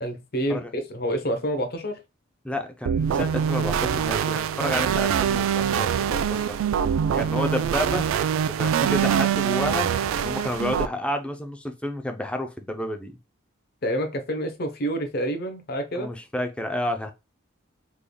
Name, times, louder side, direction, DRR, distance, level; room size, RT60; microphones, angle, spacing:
voice 1, 0.0-2.0 13.8-16.1, equal, 50° left, 0.8 m, -28 dB
voice 2, 2.4-6.6 7.1-8.1 8.6-13.2 15.9-17.1, left 1 dB, 5° left, 0.4 m, -30 dB
sound 1, 2.9-10.9, right 8 dB, 85° right, 0.3 m, -24 dB
3.7 x 3.4 x 2.2 m
head